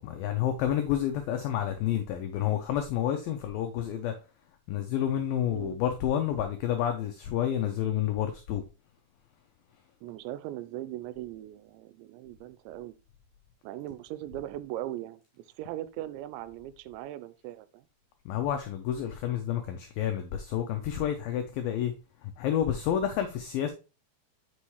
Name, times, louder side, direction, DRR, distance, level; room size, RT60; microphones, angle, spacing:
voice 1, 0.0-4.2 4.7-8.6 18.3-21.9 22.2-23.7, left 10 dB, 90° left, 2.0 m, -29 dB
voice 2, 10.0-13.0 13.6-17.9, right 14 dB, 90° right, 2.9 m, -39 dB
8.4 x 5.4 x 3.1 m
omnidirectional pair, 5.1 m